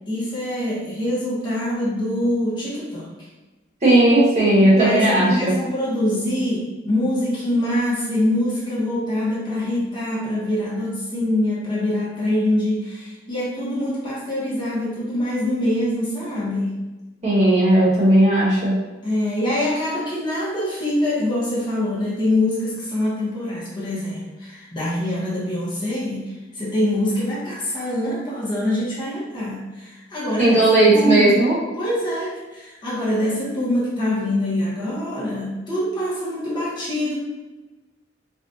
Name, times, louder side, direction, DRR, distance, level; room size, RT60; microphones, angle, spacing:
voice 1, 0.1-3.1 4.5-16.8 19.0-30.6 30.9-31.3 31.8-37.1, left 1 dB, 25° left, -8 dB, 1.1 m, -24 dB
voice 2, 3.8-5.5 17.2-18.8 30.4-31.5, right 1 dB, 40° right, -7 dB, 1.3 m, -16 dB
4.8 x 2.4 x 2.8 m, 1.2 s
head